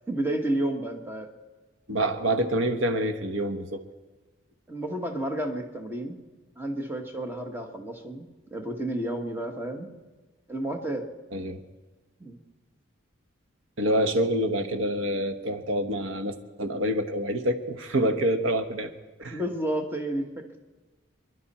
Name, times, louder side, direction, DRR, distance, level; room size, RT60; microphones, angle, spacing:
voice 1, 0.1-1.3 4.7-6.2 6.6-8.3 8.5-9.9 10.5-11.1 12.2-12.4 19.3-20.4, right 1 dB, 10° right, 3 dB, 1.3 m, -31 dB
voice 2, 1.9-3.8 11.3-11.6 13.8-18.9 19.2-19.4, right 1 dB, 80° right, 8 dB, 1.1 m, -27 dB
28.5 x 11.5 x 4.3 m, 1.3 s
head